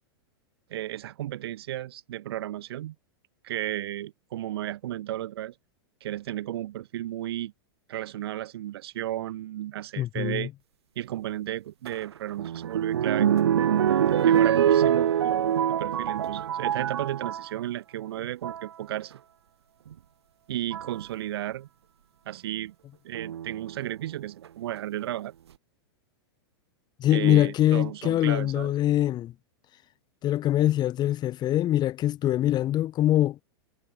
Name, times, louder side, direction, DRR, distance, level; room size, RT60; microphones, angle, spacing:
voice 1, 0.7-2.9 3.4-5.5 6.0-7.5 7.9-10.5 10.9-13.3 14.2-19.1 20.5-21.7 22.2-22.7 23.0-25.3 27.1-28.7, right 13 dB, 70° right, 1.6 m, -34 dB
voice 2, 10.0-10.5 27.0-29.3 30.2-33.4, left 13 dB, 30° left, 1.4 m, -23 dB
sound 1, 11.9-17.5 18.2-18.7 19.9-20.0 20.7-21.0 23.1-23.8 24.4-24.5 24.8-24.9, right 9 dB, 85° right, 0.5 m, -24 dB
hypercardioid pair, 110°, 13 cm